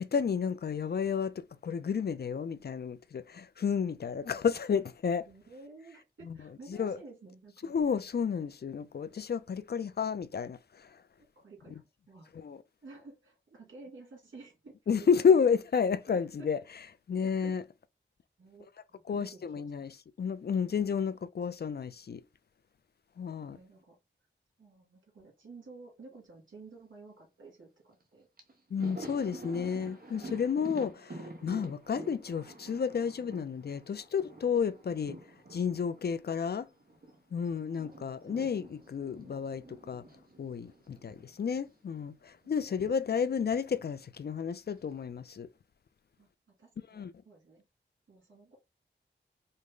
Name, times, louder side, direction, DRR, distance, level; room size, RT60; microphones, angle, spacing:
voice 1, 0.0-5.3 6.3-6.4 6.7-7.0 7.7-11.0 12.4-12.6 14.9-16.6 17.1-17.6 19.1-19.9 20.2-22.2 23.2-23.6 28.7-35.2 35.5-36.7 37.3-40.0 40.4-45.5 46.9-47.1, left 6 dB, 55° left, 0.4 m, -31 dB
voice 2, 5.3-7.8 11.4-12.3 12.8-15.1 16.1-16.5 17.2-17.6 18.4-19.7 23.4-24.0 24.6-28.3 29.6-30.2 37.7-37.8 40.9-41.4 42.4-43.2 46.2-47.6 48.1-48.6, right 3 dB, 75° right, 2.4 m, -53 dB
Thunder, 28.0-28.1 28.4-37.2 37.5-41.8 42.0-42.2 43.4-44.1, right 2 dB, 50° right, 1.1 m, -48 dB
5.1 x 2.1 x 3.7 m
wide cardioid pair, 70°, 20 cm